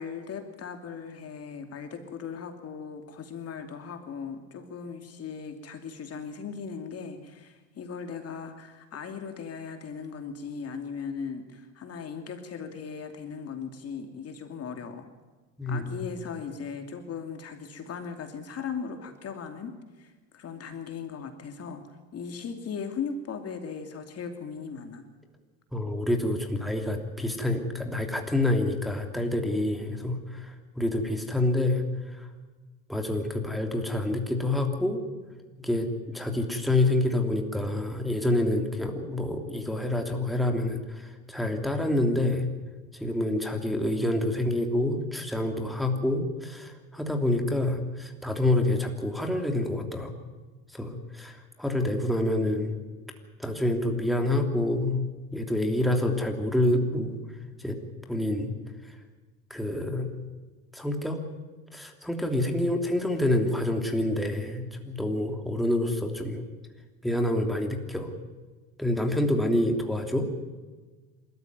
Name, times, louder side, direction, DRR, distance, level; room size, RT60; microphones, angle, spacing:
voice 1, 0.0-15.0 15.7-21.8 22.1-25.1, left 6 dB, 35° left, 6 dB, 2.7 m, -38 dB
voice 2, 15.6-16.0 25.7-32.3 32.9-35.0 35.6-42.5 42.9-50.1 50.7-52.8 53.4-55.0 55.3-57.2 57.6-57.8 58.1-58.5 58.8-58.9 59.5-60.1 60.7-61.2 61.7-66.4 67.0-68.1 68.8-70.3, left 1 dB, ahead, 3 dB, 3.1 m, -27 dB
27.5 x 13.5 x 9.5 m, 1.3 s
supercardioid pair, 100°, 41 cm